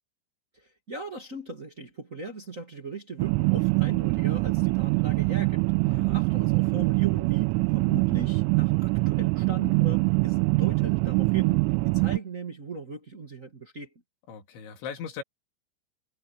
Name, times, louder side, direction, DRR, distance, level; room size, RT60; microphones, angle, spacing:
voice 1, 0.5-13.9, right 3 dB, 40° right, 1.1 m, -39 dB
sound 1, 3.2-12.2, right 28 dB, 85° right, 3.1 m, -24 dB
voice 2, 5.9-6.2 14.3-15.2, left 7 dB, 70° left, 4.8 m, -39 dB
omnidirectional pair, 5.7 m